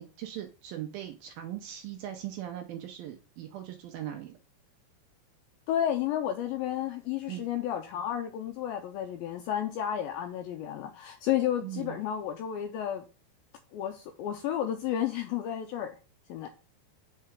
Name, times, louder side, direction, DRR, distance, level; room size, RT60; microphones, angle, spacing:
voice 1, 0.0-4.3 7.3-7.4 11.6-12.0, right 12 dB, 80° right, 2.1 m, -39 dB
voice 2, 5.7-13.1 13.7-16.0 16.3-16.5, left 10 dB, 90° left, 2.1 m, -32 dB
5.7 x 4.4 x 6.2 m
omnidirectional pair, 4.8 m